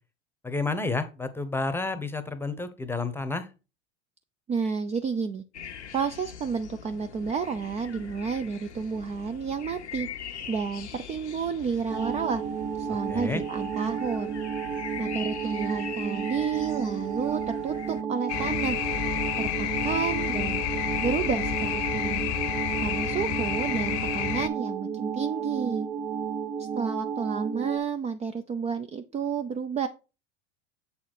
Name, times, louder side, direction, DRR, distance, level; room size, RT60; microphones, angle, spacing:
voice 1, 0.4-3.5 12.9-13.4, left 3 dB, 5° left, 11 dB, 0.9 m, -30 dB
voice 2, 4.5-5.4 5.9-10.1 10.5-12.4 12.8-14.4 15.0-18.8 19.4-22.3 22.8-25.9 26.8-29.9, right 6 dB, 20° right, 9 dB, 0.4 m, -30 dB
sound 1, 5.5-18.0, left 7 dB, 90° left, 0.9 m, -42 dB
sound 2, 11.9-27.8, right 7 dB, 65° right, 1.3 m, -32 dB
sound 3, 18.3-24.5, left 12 dB, 50° left, 0.8 m, -30 dB
7.2 x 4.2 x 4.6 m, 0.31 s
hypercardioid pair, 90°, 33 cm